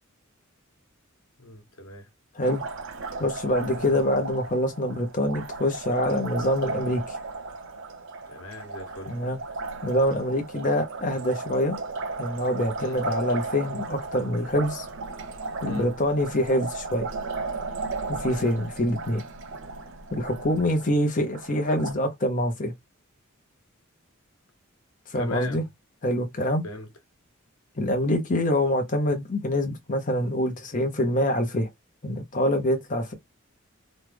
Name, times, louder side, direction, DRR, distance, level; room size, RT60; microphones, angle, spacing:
voice 1, 1.4-2.1 3.7-4.0 8.3-9.2 12.8-13.0 15.7-15.9 25.1-25.6 26.6-26.9, left 2 dB, 90° left, 1.0 m, -39 dB
Liquid, 2.4-21.9, right 3 dB, 65° right, 0.7 m, -35 dB
voice 2, 3.2-7.2 9.1-9.4 9.8-11.8 12.2-14.9 15.6-17.1 18.1-19.2 20.1-22.7 25.1-25.6 26.0-26.6 27.8-31.7 32.0-33.1, left 1 dB, 40° left, 0.8 m, -25 dB
3.1 x 2.4 x 3.4 m
head